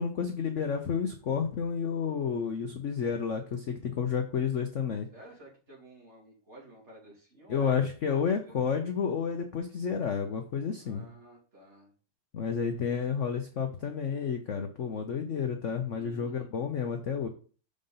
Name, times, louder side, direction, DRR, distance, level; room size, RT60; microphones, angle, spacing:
voice 1, 0.0-5.1 7.5-11.1 12.3-17.3, left 6 dB, 55° left, 5 dB, 0.8 m, -31 dB
voice 2, 5.1-7.7 8.0-8.1 8.5-8.6 10.8-11.9 15.9-16.5, right 1 dB, 30° right, -4 dB, 3.4 m, -52 dB
6.6 x 5.2 x 5.6 m, 0.40 s
omnidirectional pair, 2.2 m